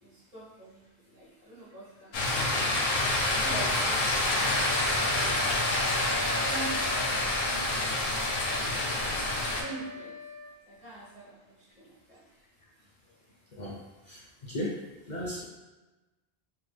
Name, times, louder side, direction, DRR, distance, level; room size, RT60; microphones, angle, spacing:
voice 1, 0.0-2.7 3.3-4.1 5.1-5.8 6.3-7.2 7.8-7.9 8.5-10.2 10.7-12.2, right 2 dB, 45° right, -9 dB, 1.3 m, -44 dB
sound 1, 2.1-9.6, left 2 dB, 85° left, 0.9 m, -27 dB
Wind instrument woodwind instrument, 4.0-10.5, left 2 dB, 25° right, 0.7 m, -41 dB
voice 2, 14.1-14.8 15.1-15.5, left 1 dB, 55° left, -5 dB, 0.6 m, -35 dB
3.2 x 2.2 x 3.1 m, 1.1 s
omnidirectional pair, 1.0 m